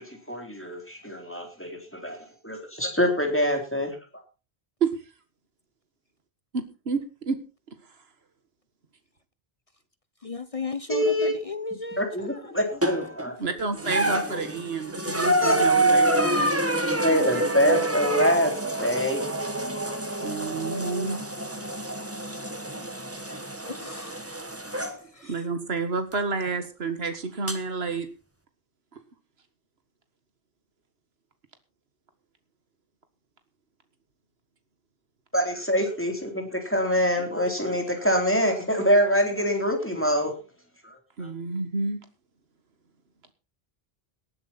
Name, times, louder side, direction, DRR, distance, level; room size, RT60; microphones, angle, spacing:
voice 1, 0.0-2.2 2.4-4.0 10.9-11.3 12.0-13.4 14.3-14.4 15.4-15.5 17.0-19.5 35.3-40.3 40.8-41.3, equal, 10° left, 3.7 m, -25 dB
voice 2, 6.5-7.4 13.4-17.0 17.3-17.5 20.2-21.2 25.2-28.1 41.2-42.0, right 4 dB, 75° right, 2.0 m, -30 dB
voice 3, 10.2-12.5 22.2-23.4 23.6-24.2 25.1-25.3, left 4 dB, 35° left, 1.0 m, -36 dB
sound 1, 12.8-13.3 13.8-25.0 26.1-26.2 27.5-27.6, right 1 dB, 15° right, 1.5 m, -27 dB
19.0 x 10.5 x 4.3 m
omnidirectional pair, 1.1 m